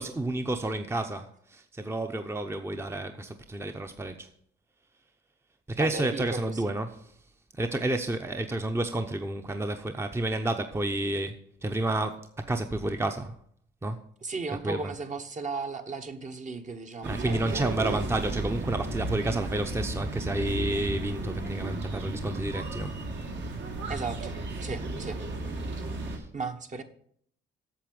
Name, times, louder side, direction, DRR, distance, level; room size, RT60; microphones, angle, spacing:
voice 1, 0.0-4.3 5.7-7.1 7.6-13.3 13.8-14.0 14.6-14.9 17.0-22.9 26.0-26.3, right 2 dB, 10° right, 0.8 m, -30 dB
voice 2, 5.8-6.7 14.2-18.0 23.9-24.3 24.6-25.2 26.3-26.8, right 4 dB, 40° right, 1.3 m, -36 dB
sound 1, 17.0-26.2, right 2 dB, 65° right, 2.4 m, -34 dB
8.5 x 6.8 x 7.8 m
cardioid pair, 90°, 20 cm